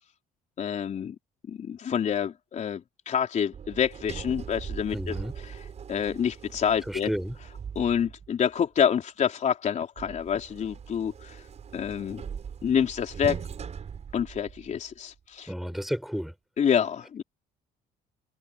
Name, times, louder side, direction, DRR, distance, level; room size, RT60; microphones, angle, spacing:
voice 1, 0.6-1.2 1.5-5.1 5.4-7.1 7.8-11.4 11.7-12.2 12.6-13.5 14.1-15.5 16.6-17.2, left 8 dB, 45° left, 3.9 m, -27 dB
Sliding door, 3.5-8.4 10.0-14.9, right 7 dB, 40° right, 6.0 m, -41 dB
voice 2, 4.9-5.3 6.9-7.3 15.5-16.3, equal, ahead, 4.9 m, -31 dB
cardioid pair, 110°, 17 cm